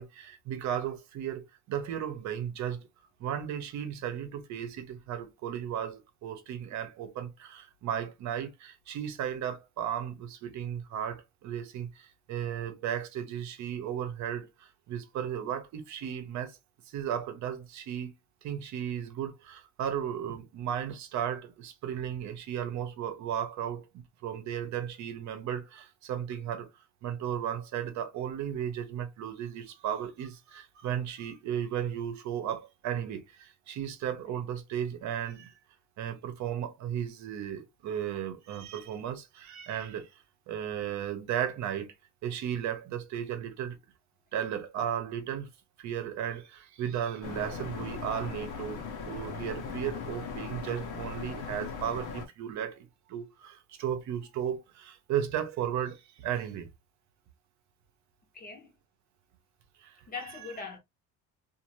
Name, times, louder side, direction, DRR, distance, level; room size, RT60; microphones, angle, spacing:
voice 1, 0.0-2.9 3.2-16.6 16.9-18.1 18.4-23.9 24.2-26.7 27.0-35.5 36.0-41.9 42.2-43.8 44.3-45.5 45.8-56.7 59.8-60.0, right 9 dB, 60° right, 0.8 m, -35 dB
sound 1, 47.2-52.3, left 5 dB, 70° left, 1.0 m, -38 dB
voice 2, 58.3-58.7 60.1-60.8, left 4 dB, 30° left, 0.8 m, -41 dB
2.6 x 2.5 x 2.9 m
cardioid pair, 145°, 31 cm